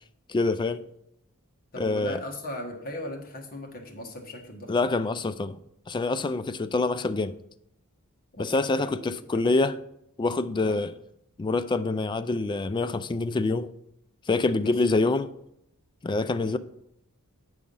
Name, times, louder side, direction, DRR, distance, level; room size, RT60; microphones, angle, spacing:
voice 1, 0.3-0.9 1.8-2.2 4.7-5.6 5.9-7.4 8.4-9.8 10.2-10.9 11.4-13.7 14.3-15.4 16.0-16.6, left 3 dB, 20° left, 0.3 m, -26 dB
voice 2, 1.7-4.7 8.3-9.4 10.6-10.8 14.5-14.7, left 1 dB, 40° left, 1.5 m, -38 dB
8.5 x 4.9 x 5.4 m
head